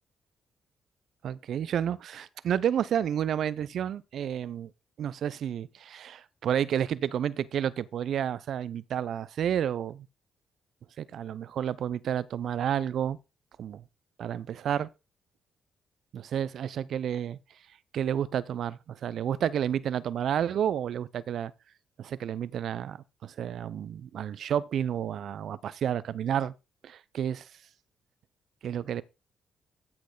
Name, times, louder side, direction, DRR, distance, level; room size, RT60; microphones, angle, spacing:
voice 1, 1.2-4.7 5.0-10.1 11.0-13.2 13.6-13.8 14.2-14.9 16.1-17.4 17.9-21.5 22.0-26.5 26.8-27.5 28.6-29.0, right 9 dB, 65° right, 0.6 m, -30 dB
13.0 x 6.1 x 3.9 m
hypercardioid pair, 45°, 0 cm